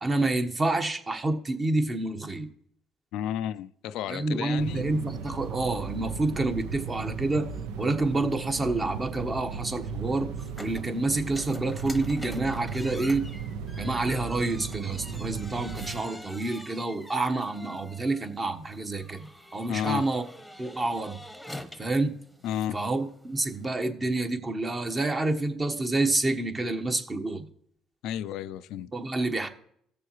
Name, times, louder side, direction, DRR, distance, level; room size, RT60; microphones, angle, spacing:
voice 1, 0.0-2.5 4.1-7.5 7.8-10.3 10.6-13.2 13.8-20.2 20.6-21.2 21.8-22.1 22.7-27.5 28.9-29.5, right 2 dB, 25° right, 1.2 m, -28 dB
voice 2, 3.1-4.9 19.7-20.1 22.4-22.8 28.0-28.9, left 10 dB, 75° left, 0.3 m, -32 dB
sound 1, 4.6-16.0, right 6 dB, 85° right, 0.6 m, -36 dB
sound 2, 10.4-23.7, left 1 dB, ahead, 1.0 m, -46 dB
16.5 x 6.8 x 3.1 m
supercardioid pair, 70°, 0 cm